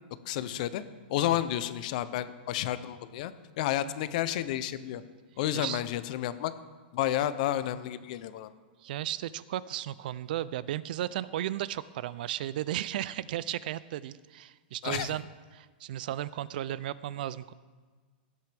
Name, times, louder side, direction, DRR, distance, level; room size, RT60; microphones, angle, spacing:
voice 1, 0.3-0.8 1.1-5.0 5.4-6.5 6.9-8.5 14.8-15.2, left 12 dB, 50° left, 14 dB, 0.6 m, -31 dB
voice 2, 8.8-15.3 15.5-17.5, right 13 dB, 60° right, 18 dB, 0.4 m, -35 dB
16.5 x 8.2 x 3.5 m, 1.4 s
hypercardioid pair, 150°, 5 cm